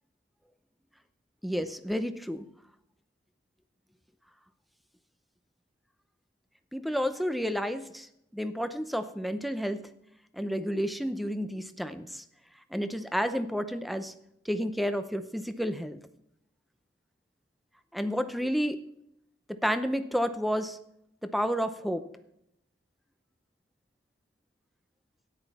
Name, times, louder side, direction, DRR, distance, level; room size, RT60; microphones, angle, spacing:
voice 1, 1.4-2.4 6.7-9.9 10.3-12.2 12.7-14.1 14.4-16.0 17.9-18.9 19.5-20.8 21.2-22.1, equal, ahead, 10 dB, 0.7 m, -31 dB
13.0 x 10.0 x 4.2 m, 0.79 s
head